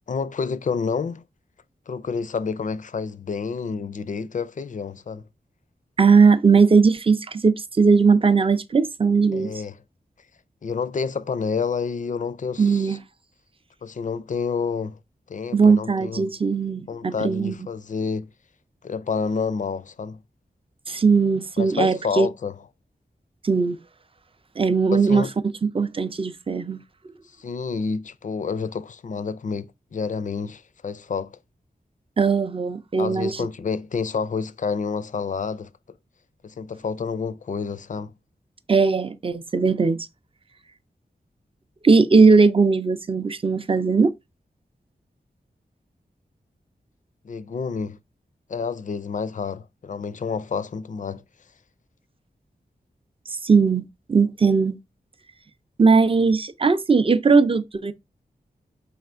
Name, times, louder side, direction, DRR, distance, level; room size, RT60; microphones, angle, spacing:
voice 1, 0.1-1.2 1.9-5.2 9.3-9.7 10.6-13.0 13.8-15.0 15.3-16.2 16.9-18.3 18.8-20.2 21.6-22.6 24.9-25.3 27.4-31.4 33.0-35.7 36.4-38.1 47.2-48.0 48.5-51.2, left 5 dB, 50° left, 0.4 m, -29 dB
voice 2, 6.0-9.5 12.6-13.0 15.5-17.6 20.9-22.3 23.4-23.8 24.6-25.2 25.6-26.8 32.2-33.5 38.7-40.1 41.8-44.1 53.4-54.8 55.8-57.9, right 4 dB, 30° right, 0.4 m, -19 dB
4.8 x 3.3 x 2.4 m
cardioid pair, 55°, 17 cm